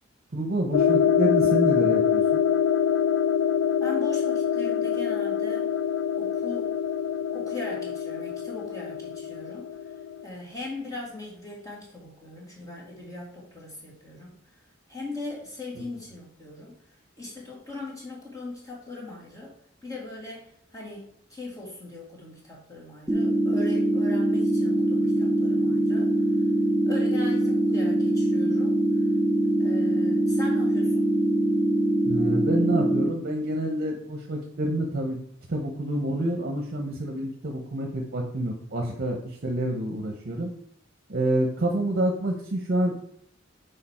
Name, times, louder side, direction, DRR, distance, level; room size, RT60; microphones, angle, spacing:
voice 1, 0.3-2.4 15.7-15.8 32.0-35.2 35.5-40.5 41.1-43.1, right 1 dB, 50° right, 2 dB, 0.8 m, -28 dB
sound 1, 0.7-10.2, left 7 dB, 75° left, 0.3 m, -25 dB
voice 2, 3.8-5.7 6.2-6.7 7.3-9.7 10.2-14.3 14.9-16.7 17.2-19.5 19.8-21.0 21.3-26.1 26.9-28.8 29.6-31.1, left 2 dB, 15° left, -4 dB, 2.2 m, -39 dB
sound 2, 23.1-33.1, right 1 dB, 5° right, 0.5 m, -23 dB
6.6 x 5.2 x 4.3 m, 0.67 s
head